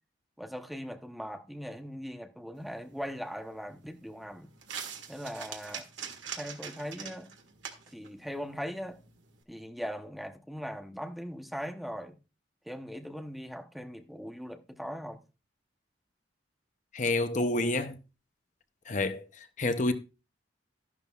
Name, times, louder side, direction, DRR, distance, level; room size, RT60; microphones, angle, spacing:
voice 1, 0.4-4.5 5.1-5.9 6.3-7.3 7.9-9.0 9.5-12.2 12.6-15.2, equal, ahead, 0.8 m, -40 dB
sound 1, 2.6-9.4, right 7 dB, 80° right, 1.7 m, -45 dB
voice 2, 16.9-18.0 18.9-19.9, left 2 dB, 40° left, 0.7 m, -29 dB
12.5 x 11.0 x 2.4 m
head